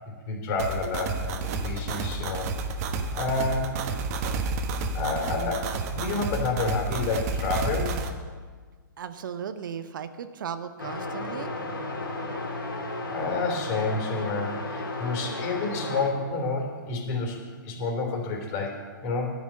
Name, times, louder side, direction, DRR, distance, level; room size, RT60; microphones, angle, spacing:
voice 1, 0.3-2.5 3.1-3.7 4.9-5.7 5.9-8.0 13.1-17.4 17.6-19.3, left 3 dB, 40° left, 1 dB, 3.3 m, -29 dB
sound 1, 0.6-8.1, right 3 dB, 45° right, 1.2 m, -30 dB
voice 2, 9.0-11.5, right 8 dB, 70° right, 11 dB, 0.8 m, -36 dB
sound 2, 10.8-16.1, left 2 dB, 85° left, 3.2 m, -34 dB
11.0 x 6.1 x 8.6 m, 1.5 s
hypercardioid pair, 130°, 11 cm